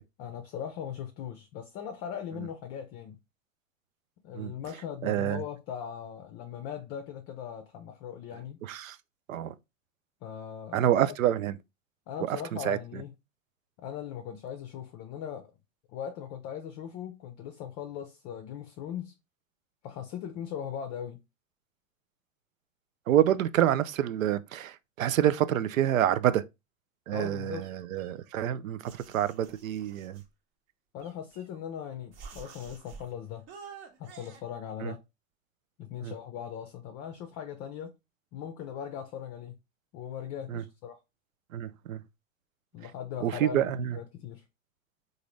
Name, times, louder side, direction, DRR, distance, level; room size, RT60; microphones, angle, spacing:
voice 1, 0.2-3.2 4.2-8.6 10.2-10.9 12.1-13.1 13.8-15.5 15.9-19.1 19.8-21.2 27.1-27.7 30.9-33.4 34.0-35.0 35.8-37.9 38.3-39.5 39.9-41.0 42.7-44.4, left 9 dB, 35° left, 0.5 m, -39 dB
voice 2, 5.0-5.4 8.6-9.0 9.3-9.5 10.7-11.5 12.3-12.8 23.1-26.4 27.1-30.2 34.8-34.9 36.0-36.1 40.5-40.6 41.5-42.0 43.2-44.0, right 11 dB, 80° right, 0.5 m, -27 dB
sound 1, 27.6-28.5 28.8-30.3 31.0-31.7 32.1-33.1 33.5-34.4, right 6 dB, 40° right, 1.0 m, -50 dB
3.8 x 2.6 x 3.0 m
hypercardioid pair, 100°, 40 cm